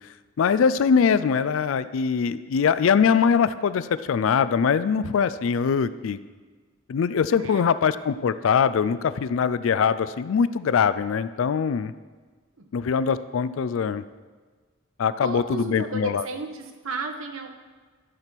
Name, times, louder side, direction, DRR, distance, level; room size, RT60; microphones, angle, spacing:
voice 1, 0.4-6.2 6.9-11.9 12.7-14.0 15.0-16.2, left 6 dB, 75° left, 15 dB, 0.4 m, -22 dB
voice 2, 15.2-17.5, right 3 dB, 80° right, 5 dB, 1.0 m, -33 dB
13.0 x 5.9 x 4.5 m, 1.4 s
head